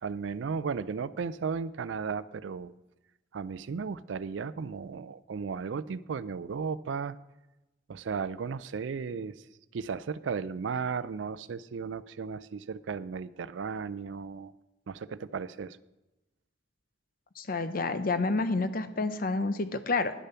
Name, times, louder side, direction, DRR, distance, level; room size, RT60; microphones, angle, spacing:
voice 1, 0.0-2.7 3.3-7.2 7.9-9.4 9.7-14.5 14.9-15.8, right 5 dB, 80° right, 16 dB, 0.4 m, -35 dB
voice 2, 17.4-20.1, left 3 dB, 50° left, 11 dB, 0.7 m, -29 dB
10.5 x 6.8 x 5.6 m, 1.0 s
head